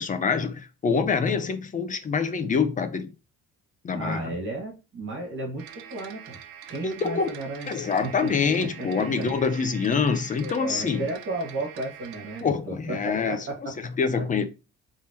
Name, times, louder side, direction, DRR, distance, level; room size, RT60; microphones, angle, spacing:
voice 1, 0.0-3.1 3.8-4.3 6.8-7.3 7.7-11.0 12.4-13.4 14.0-14.4, left 5 dB, 20° left, 0.5 m, -25 dB
voice 2, 3.9-6.4 6.7-7.7 8.0-9.3 10.4-13.0 13.3-13.7, right 2 dB, 35° right, 1.9 m, -34 dB
sound 1, 5.6-12.4, right 9 dB, 80° right, 0.9 m, -44 dB
4.3 x 3.7 x 2.9 m
cardioid pair, 175°, 36 cm